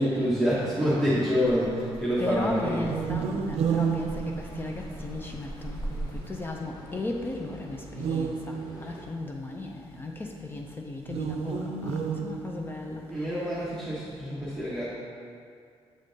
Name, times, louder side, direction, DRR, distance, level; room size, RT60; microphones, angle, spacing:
voice 1, 0.0-3.0 13.1-14.9, equal, 5° left, -9 dB, 0.9 m, -27 dB
Rattle (instrument), 1.4-6.8, right 2 dB, 25° right, 1.0 m, -41 dB
voice 2, 2.2-13.3, left 2 dB, 20° left, 1 dB, 0.4 m, -36 dB
sound 1, 2.8-5.1 7.9-9.2 11.0-12.9, right 6 dB, 80° right, 0.5 m, -30 dB
sound 2, 3.6-9.0, left 1 dB, 35° left, 1.0 m, -47 dB
7.4 x 3.6 x 3.9 m, 2.3 s
cardioid pair, 145°, 10 cm